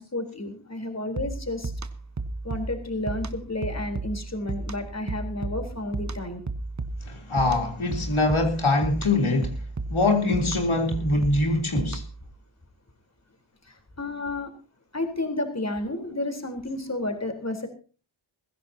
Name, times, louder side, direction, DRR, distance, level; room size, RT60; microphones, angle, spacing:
voice 1, 0.0-1.7 2.4-6.4 13.6-14.5 14.9-17.7, left 2 dB, 35° left, 4.0 m, -31 dB
sound 1, 1.2-12.3, right 3 dB, 35° right, 1.3 m, -34 dB
voice 2, 7.1-9.5 9.9-12.0, left 2 dB, 80° left, 3.5 m, -23 dB
22.0 x 16.0 x 2.8 m
wide cardioid pair, 80°, 48 cm